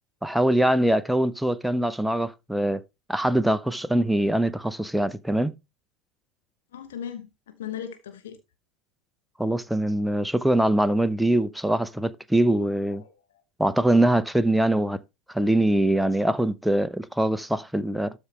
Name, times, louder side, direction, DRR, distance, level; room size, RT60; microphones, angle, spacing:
voice 1, 0.2-2.8 3.1-5.5 9.4-13.0 13.6-15.0 15.3-18.1, right 1 dB, 5° right, 0.8 m, -23 dB
voice 2, 6.7-8.4 13.0-13.1 16.0-16.4, left 9 dB, 70° left, 1.1 m, -38 dB
12.5 x 5.0 x 3.3 m
figure-of-eight pair, 75°, 0 cm